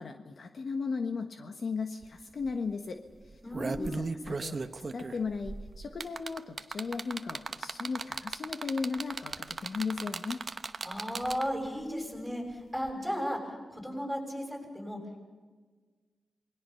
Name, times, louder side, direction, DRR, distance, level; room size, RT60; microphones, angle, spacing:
voice 1, 0.0-3.0 3.7-10.4, left 4 dB, 55° left, 6 dB, 1.3 m, -36 dB
sound 1, 2.0-2.1 2.4-2.7 3.2-11.7 12.8-12.9, right 4 dB, 40° right, 1.0 m, -37 dB
voice 2, 3.4-4.1 10.8-15.2, equal, 5° left, 2 dB, 6.7 m, -35 dB
28.0 x 21.0 x 5.7 m, 1.4 s
wide cardioid pair, 110°, 0 cm